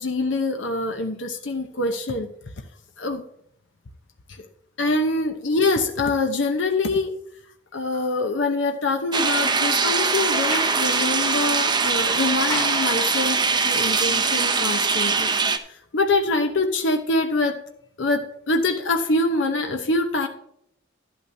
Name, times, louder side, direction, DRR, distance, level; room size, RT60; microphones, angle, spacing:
voice 1, 0.0-2.3 3.0-3.2 4.4-4.5 4.8-7.2 7.7-13.4 13.6-15.3 15.9-17.6 18.0-20.3, left 2 dB, 70° left, 5 dB, 0.9 m, -24 dB
sound 1, 9.1-15.6, right 4 dB, 25° right, 0.6 m, -22 dB
Sliding door, 10.3-13.6, left 2 dB, 20° left, 1.5 m, -36 dB
12.0 x 11.5 x 2.8 m, 0.72 s
head